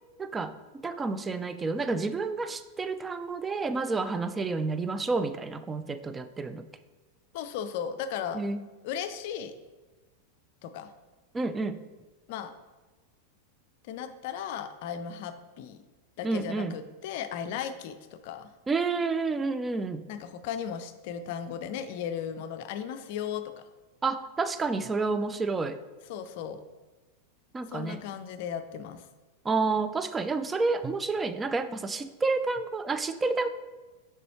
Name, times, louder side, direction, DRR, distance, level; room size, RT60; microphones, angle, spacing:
voice 1, 0.2-6.6 8.3-8.7 11.3-11.8 16.2-16.7 18.7-20.0 24.0-25.8 27.5-28.0 29.4-33.5, right 3 dB, 15° right, 11 dB, 0.3 m, -29 dB
voice 2, 7.3-8.4 8.8-9.5 10.6-10.9 12.3-12.5 13.8-15.8 16.2-18.5 20.1-23.6 26.1-26.6 27.7-29.0, left 8 dB, 50° left, 10 dB, 0.4 m, -36 dB
6.7 x 4.6 x 3.0 m, 1.2 s
figure-of-eight pair, 90°, 0 cm